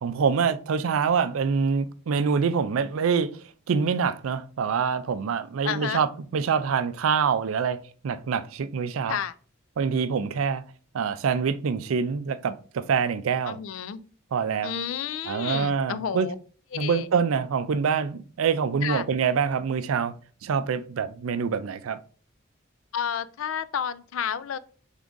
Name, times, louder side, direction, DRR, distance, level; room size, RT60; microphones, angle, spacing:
voice 1, 0.0-3.3 3.7-7.8 8.0-9.2 9.8-10.6 10.9-13.6 14.3-14.7 15.3-16.3 16.7-20.2 20.4-22.0, right 6 dB, 80° right, 0.4 m, -25 dB
voice 2, 5.6-6.0 9.1-9.3 13.4-14.0 14.6-16.4 16.7-17.1 18.8-19.0 22.9-24.6, left 8 dB, 70° left, 0.4 m, -31 dB
3.7 x 3.6 x 3.7 m
head